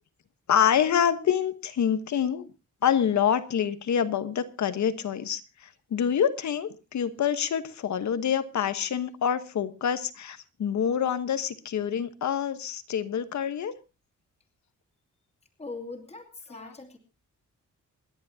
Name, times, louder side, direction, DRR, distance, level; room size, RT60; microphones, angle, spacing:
voice 1, 0.5-2.4 2.8-13.7, left 8 dB, 65° left, 11 dB, 1.3 m, -26 dB
voice 2, 15.6-17.0, left 3 dB, 20° left, 2 dB, 2.4 m, -41 dB
27.5 x 10.5 x 2.8 m, 0.29 s
wide cardioid pair, 155°, 31 cm